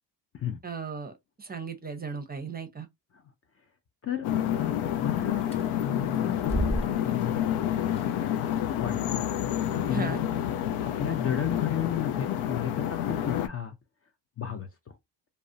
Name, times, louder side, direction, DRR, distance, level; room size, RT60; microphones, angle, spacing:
voice 1, 0.6-1.1 1.4-2.9 9.9-10.2, right 5 dB, 20° right, 0.6 m, -36 dB
voice 2, 4.0-7.4 8.4-9.2 9.9-10.2 10.8-13.8 14.4-14.9, left 9 dB, 30° left, 0.5 m, -34 dB
sound 1, 4.2-13.5, left 10 dB, 85° left, 0.6 m, -29 dB
sound 2, 5.4-12.4, equal, 10° left, 0.9 m, -38 dB
2.3 x 2.1 x 2.5 m
supercardioid pair, 60°, 48 cm